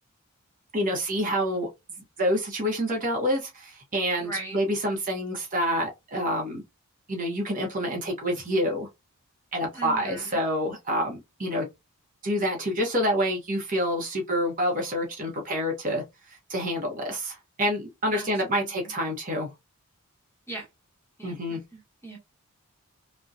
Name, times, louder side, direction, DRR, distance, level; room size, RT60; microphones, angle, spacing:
voice 1, 0.7-1.7 2.2-6.6 7.1-8.9 9.5-11.7 12.2-19.5 21.2-21.6, equal, 35° right, 0.7 m, -27 dB
voice 2, 4.2-4.6 9.7-10.4 18.1-18.9 20.5-20.7 21.2-22.2, right 2 dB, 10° left, 0.9 m, -39 dB
2.7 x 2.1 x 2.3 m
head